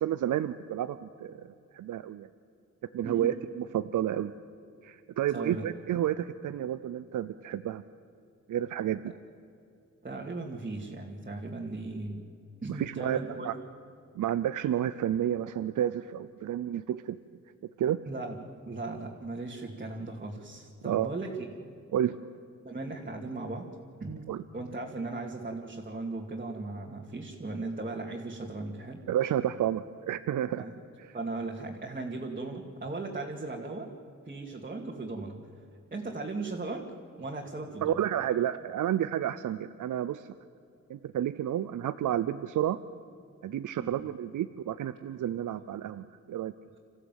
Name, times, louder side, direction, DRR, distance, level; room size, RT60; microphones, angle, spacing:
voice 1, 0.0-2.3 2.9-4.3 4.8-7.8 8.5-9.0 12.7-13.6 14.2-17.2 17.8-18.0 20.8-21.1 21.9-22.3 24.3-24.4 29.1-30.6 37.8-40.3 40.9-42.8 43.4-46.5, right 11 dB, 90° right, 13 dB, 0.7 m, -30 dB
voice 2, 5.3-5.7 10.0-12.3 12.6-13.5 18.0-18.4 18.6-21.5 22.6-23.7 24.0-24.3 24.5-29.0 30.6-30.7 31.1-33.9 34.2-35.4 35.9-36.9 37.2-38.0 43.8-44.0, right 3 dB, 30° right, -2 dB, 2.5 m, -37 dB
27.0 x 15.0 x 9.2 m, 2.5 s
cardioid pair, 100°, 30 cm